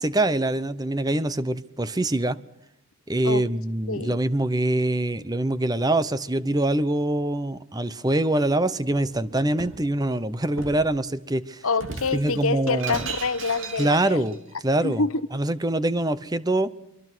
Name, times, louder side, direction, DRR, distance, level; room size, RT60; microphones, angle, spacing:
voice 1, 0.0-2.4 3.1-11.6 12.1-13.0 13.8-14.4 14.6-15.0 15.3-16.7, right 1 dB, 15° right, 0.9 m, -24 dB
voice 2, 3.9-4.2 11.6-14.2 14.8-15.2, left 4 dB, 75° left, 1.0 m, -26 dB
Shatter, 9.0-9.8 10.6-10.9 11.7-14.4, right 4 dB, 60° right, 2.9 m, -36 dB
25.0 x 23.0 x 6.2 m
head